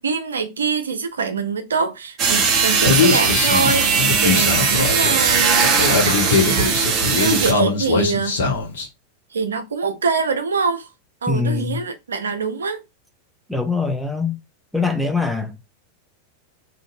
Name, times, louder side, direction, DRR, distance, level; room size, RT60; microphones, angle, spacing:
voice 1, 0.0-8.4 9.3-10.9 11.2-12.8, right 5 dB, 70° right, 0.4 m, -24 dB
sound 1, 2.2-7.5, right 5 dB, 35° right, 0.8 m, -19 dB
Human voice, 2.9-8.9, left 4 dB, 60° left, 0.9 m, -21 dB
voice 2, 11.3-11.8 13.5-14.4 14.7-15.7, left 4 dB, ahead, 0.6 m, -23 dB
2.6 x 2.5 x 2.5 m
figure-of-eight pair, 90°, 0 cm